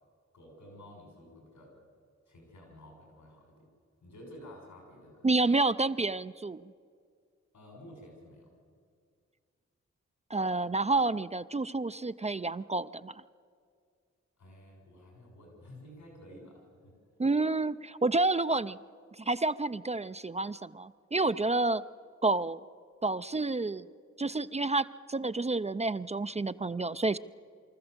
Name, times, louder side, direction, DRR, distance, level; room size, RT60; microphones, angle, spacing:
voice 1, 0.3-1.7 2.3-3.7 4.0-5.3 7.5-8.5 14.4-16.9, left 1 dB, 85° left, 1 dB, 6.4 m, -52 dB
voice 2, 5.2-6.6 10.3-13.1 17.2-18.8 19.2-21.8 22.2-22.6 23.0-23.9 24.2-27.2, right 3 dB, 20° right, 12 dB, 0.5 m, -29 dB
24.0 x 14.0 x 8.0 m, 2.1 s
supercardioid pair, 45°, 29 cm